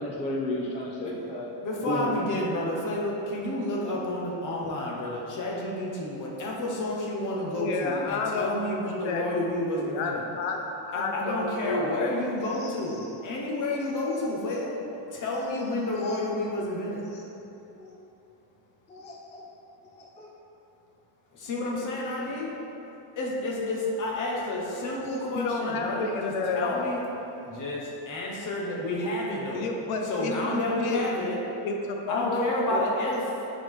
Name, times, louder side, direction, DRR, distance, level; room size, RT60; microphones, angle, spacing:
voice 1, 0.0-1.5 1.9-2.3 17.8-17.9 18.9-19.4 19.9-20.3, left 1 dB, 15° left, -3 dB, 0.3 m, -33 dB
voice 2, 1.6-10.2 10.9-14.8 15.1-17.0 21.3-22.5 23.2-27.0 27.5-29.7 30.0-31.4 32.1-33.3, left 1 dB, 40° left, -3 dB, 1.2 m, -30 dB
voice 3, 7.6-9.2 9.8-10.6 10.9-12.1 25.4-27.0 29.5-31.0 31.6-32.8, left 3 dB, 75° left, 2 dB, 0.9 m, -30 dB
9.6 x 4.0 x 3.6 m, 2.9 s
cardioid pair, 160°, 50 cm